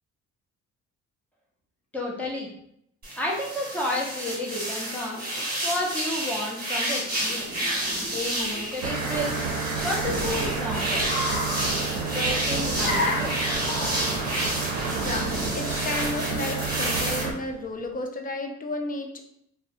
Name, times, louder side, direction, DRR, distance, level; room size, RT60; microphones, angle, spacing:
voice 1, 1.9-2.5 3.2-5.2 5.6-7.7 8.1-9.4 9.8-11.1 11.6-11.7 12.1-13.4, left 1 dB, 5° left, -4 dB, 0.8 m, -31 dB
sound 1, 3.0-17.2, right 1 dB, 30° right, 1.1 m, -30 dB
Car, 7.5-17.8, left 1 dB, 90° left, 0.7 m, -36 dB
sound 2, 8.8-17.3, right 4 dB, 90° right, 0.5 m, -30 dB
voice 2, 15.0-19.2, left 2 dB, 30° left, 3 dB, 0.4 m, -33 dB
2.6 x 2.1 x 2.6 m, 0.72 s
cardioid pair, 90°, 30 cm